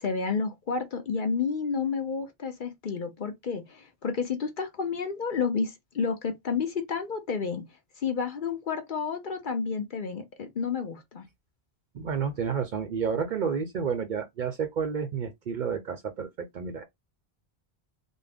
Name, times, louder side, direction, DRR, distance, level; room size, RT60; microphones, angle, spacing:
voice 1, 0.0-7.6 8.0-11.2, left 5 dB, 55° left, 0.8 m, -30 dB
voice 2, 11.9-16.8, right 6 dB, 55° right, 0.6 m, -30 dB
3.5 x 2.1 x 3.4 m
omnidirectional pair, 1.1 m